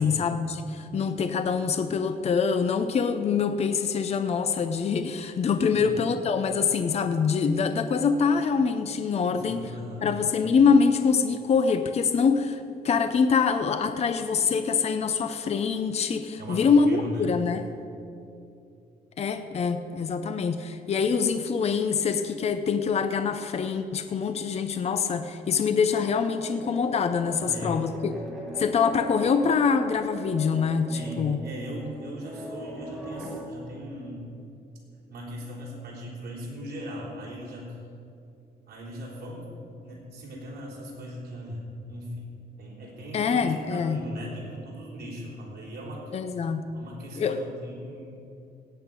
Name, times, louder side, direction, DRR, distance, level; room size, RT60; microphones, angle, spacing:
voice 1, 0.0-9.6 10.0-17.6 19.2-28.1 28.6-31.4 43.1-44.0 46.1-46.8 47.2-47.4, left 5 dB, 35° left, 9 dB, 0.6 m, -25 dB
voice 2, 9.3-10.1 16.4-17.4 27.4-27.8 30.9-34.3 35.1-37.8 38.6-39.5 39.8-42.3 42.6-46.1 46.7-48.3, equal, 60° right, -5 dB, 3.6 m, -39 dB
sound 1, 26.4-33.5, right 1 dB, ahead, 1.8 m, -40 dB
17.0 x 8.6 x 5.3 m, 2.6 s
wide cardioid pair, 155°, 18 cm